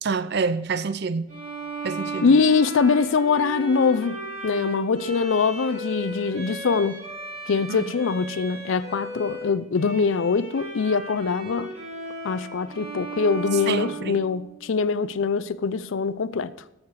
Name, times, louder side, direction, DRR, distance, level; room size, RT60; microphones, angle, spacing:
voice 1, 0.0-1.3 1.8-2.4 7.7-7.9 13.7-14.2, right 4 dB, 55° right, 0.6 m, -27 dB
Bowed string instrument, 1.3-14.7, right 2 dB, 35° right, 4.9 m, -36 dB
voice 2, 2.2-7.0 7.5-11.7 12.2-16.5, left 5 dB, 70° left, 0.5 m, -23 dB
14.0 x 6.5 x 4.7 m
head